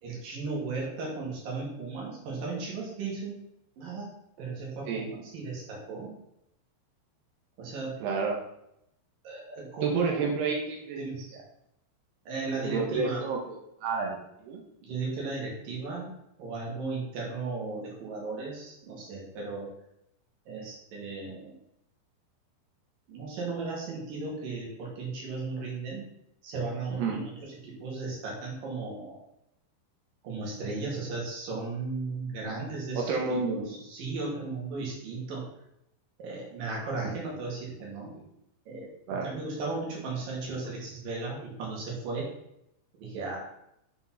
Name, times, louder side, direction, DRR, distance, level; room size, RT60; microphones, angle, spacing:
voice 1, 0.0-3.4 3.8-6.1 7.6-7.9 9.2-10.3 11.0-11.2 12.3-13.3 14.8-16.1 16.4-19.7 20.5-21.5 23.1-26.1 26.4-29.2 30.2-35.4 36.2-38.1 38.7-38.9 39.2-42.3 43.0-43.4, right 3 dB, 55° right, -3 dB, 4.3 m, -36 dB
voice 2, 8.0-8.4 9.8-11.0 12.5-14.6 26.9-27.2 32.9-33.8 38.1-38.2 39.1-39.3, right 4 dB, 70° right, 0 dB, 3.3 m, -30 dB
8.4 x 5.9 x 5.8 m, 0.80 s
omnidirectional pair, 5.1 m